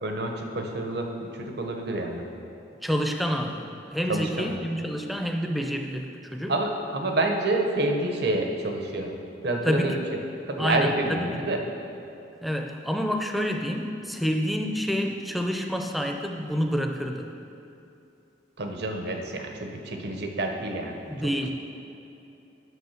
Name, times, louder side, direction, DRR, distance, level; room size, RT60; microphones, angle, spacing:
voice 1, 0.0-2.2 4.1-4.6 6.5-9.2 9.4-10.0 10.5-11.6 18.6-21.5, right 2 dB, 65° right, 3 dB, 1.0 m, -28 dB
voice 2, 2.8-3.6 3.9-6.5 9.7-9.9 10.6-11.3 12.4-17.3 21.1-21.5, equal, ahead, 3 dB, 0.6 m, -28 dB
9.4 x 6.2 x 5.8 m, 2.9 s
head